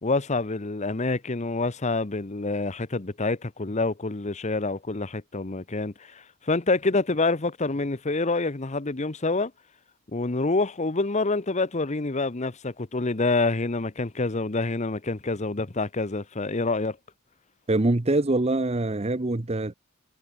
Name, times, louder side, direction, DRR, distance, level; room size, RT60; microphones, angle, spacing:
voice 1, 0.0-9.5 10.1-17.0, left 3 dB, 30° left, 0.9 m, -27 dB
voice 2, 17.7-19.7, right 2 dB, 30° right, 0.8 m, -24 dB
head